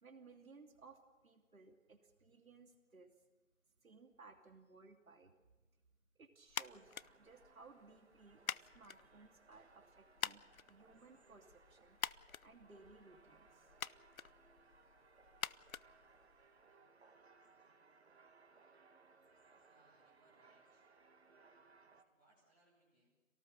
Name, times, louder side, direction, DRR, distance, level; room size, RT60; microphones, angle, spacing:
voice 1, 0.0-3.1 3.8-5.3 6.1-12.0 12.4-13.7, right 4 dB, 85° right, 4 dB, 2.8 m, -61 dB
sound 1, 6.5-16.7, left 7 dB, 90° left, 0.7 m, -48 dB
sound 2, 6.6-22.0, right 4 dB, 50° right, 1.9 m, -67 dB
voice 2, 19.2-20.9 22.0-23.1, right 2 dB, 10° right, -8 dB, 2.3 m, -74 dB
27.0 x 18.0 x 6.6 m, 1.2 s
hypercardioid pair, 175°, 41 cm